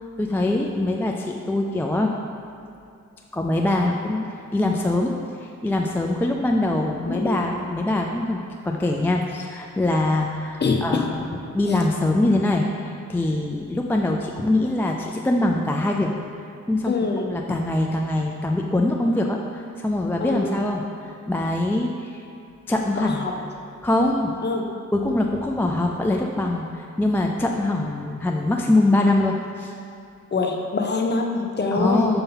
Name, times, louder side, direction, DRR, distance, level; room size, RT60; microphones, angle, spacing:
voice 1, 0.0-2.1 3.3-5.1 5.4-11.2 11.5-16.1 16.7-22.2 22.7-23.3 23.8-24.3 24.9-29.7 31.7-32.2, left 2 dB, 5° left, 0 dB, 0.3 m, -23 dB
voice 2, 7.0-7.4 10.6-11.1 11.7-11.8 16.9-17.3 20.2-20.6 23.0-23.4 24.4-24.7 30.3-32.1, left 4 dB, 35° left, 2 dB, 0.7 m, -24 dB
6.7 x 2.7 x 5.5 m, 2.6 s
cardioid pair, 80°, 32 cm